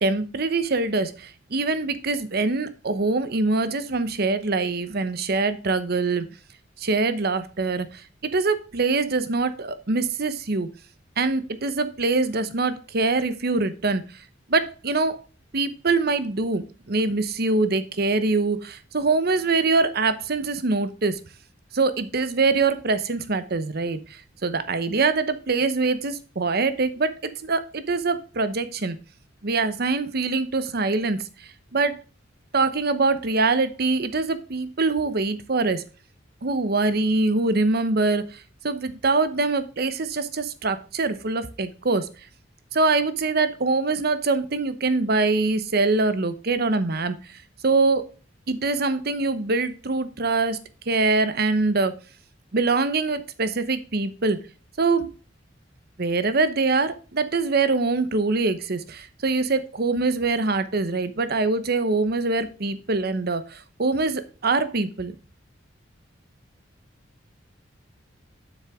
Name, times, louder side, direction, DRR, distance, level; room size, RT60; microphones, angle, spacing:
voice 1, 0.0-6.2 6.8-10.7 11.2-14.0 14.5-15.2 15.5-21.2 21.7-29.0 29.4-31.9 32.5-35.8 36.4-42.1 42.7-48.0 48.5-51.9 52.5-54.4 54.8-55.1 56.0-65.2, right 3 dB, 55° right, 12 dB, 0.9 m, -24 dB
7.7 x 6.4 x 3.6 m, 0.35 s
head